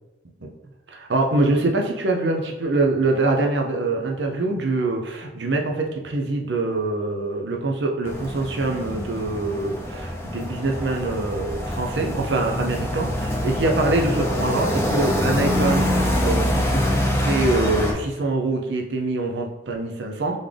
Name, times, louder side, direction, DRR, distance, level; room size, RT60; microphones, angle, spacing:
voice 1, 0.9-16.8 17.3-20.4, right 2 dB, 80° right, 2 dB, 0.7 m, -24 dB
sound 1, 8.1-17.9, left 1 dB, 15° left, 0.6 m, -25 dB
4.0 x 3.6 x 3.3 m, 1.0 s
head